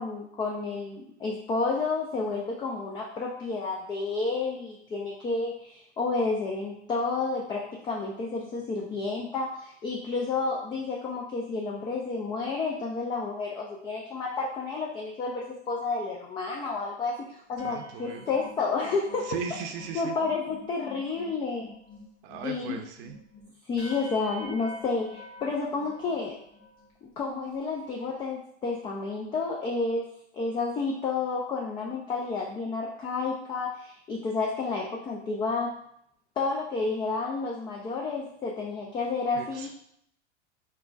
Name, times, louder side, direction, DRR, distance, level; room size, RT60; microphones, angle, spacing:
voice 1, 0.0-19.4 19.9-21.7 22.4-22.8 23.7-26.4 27.2-30.1 30.3-35.8 36.4-39.7, left 4 dB, 15° left, -1 dB, 0.3 m, -30 dB
sound 1, 17.5-26.9 27.4-27.6 27.8-28.2, left 1 dB, 55° left, 1.5 m, -48 dB
voice 2, 17.6-18.3 19.2-20.1 22.2-23.2 39.3-39.7, right 7 dB, 50° right, 5 dB, 0.6 m, -37 dB
4.3 x 3.6 x 2.3 m, 0.71 s
hypercardioid pair, 95°, 36 cm